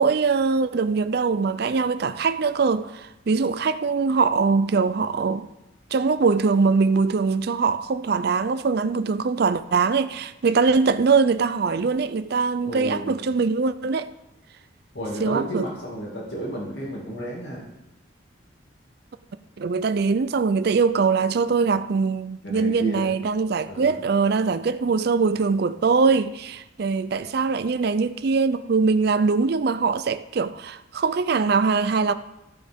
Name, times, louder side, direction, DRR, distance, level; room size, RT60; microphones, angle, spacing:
voice 1, 0.0-5.5 5.9-14.1 15.2-15.6 19.6-32.1, right 4 dB, 55° right, 0.4 m, -22 dB
voice 2, 12.6-13.2 14.9-17.7 22.4-23.1 23.7-24.0, right 1 dB, 65° left, 2.3 m, -32 dB
14.5 x 8.5 x 3.6 m
head